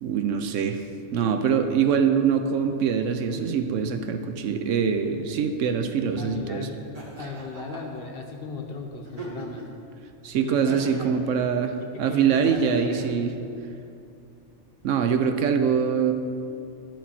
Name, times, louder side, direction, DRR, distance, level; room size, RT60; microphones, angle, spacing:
voice 1, 0.0-0.8 1.1-6.7 10.2-13.3 14.8-16.1, right 7 dB, 75° right, 7 dB, 0.9 m, -24 dB
voice 2, 6.2-9.6 10.4-11.1 11.8-13.1 15.2-15.3, left 4 dB, 50° left, 3 dB, 0.9 m, -37 dB
Laughter, 6.9-8.0 9.0-9.8 10.7-11.2 12.3-13.1, right 2 dB, 30° right, 1.2 m, -40 dB
11.5 x 5.9 x 4.2 m, 2.6 s
omnidirectional pair, 1.4 m